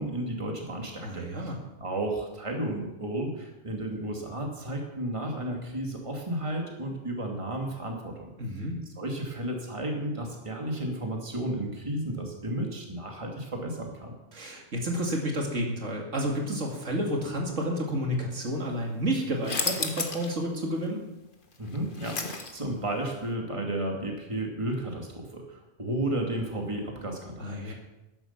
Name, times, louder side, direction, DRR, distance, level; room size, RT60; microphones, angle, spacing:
voice 1, 0.0-1.5 1.8-8.3 9.0-14.1 21.6-27.7, right 1 dB, 25° right, 1 dB, 2.4 m, -33 dB
voice 2, 1.0-1.6 8.4-8.8 14.3-21.0 27.4-27.7, equal, 70° right, 1 dB, 2.5 m, -30 dB
sound 1, 19.4-20.3 20.7-20.8 21.5-22.8, left 4 dB, 40° left, 1.5 m, -32 dB
13.5 x 11.0 x 5.8 m, 0.99 s
omnidirectional pair, 1.3 m